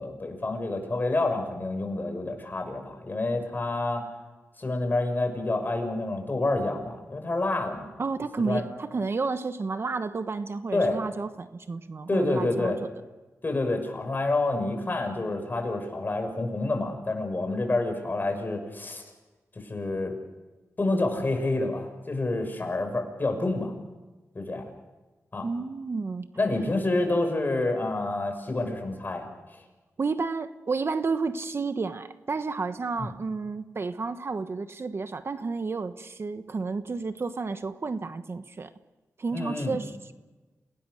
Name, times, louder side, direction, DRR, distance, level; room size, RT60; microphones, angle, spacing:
voice 1, 0.0-4.0 4.6-7.9 8.5-8.6 10.7-11.0 12.1-12.8 13.4-19.0 19.6-20.1 20.8-23.7 24.3-24.6 25.3-25.5 26.4-29.3 33.0-33.1 39.3-39.8, left 2 dB, 35° left, 4 dB, 6.4 m, -28 dB
voice 2, 8.0-12.7 25.4-26.3 30.0-38.7 39.2-40.1, right 4 dB, 50° right, 10 dB, 1.1 m, -31 dB
28.5 x 19.0 x 6.6 m, 1.2 s
wide cardioid pair, 80°, 6 cm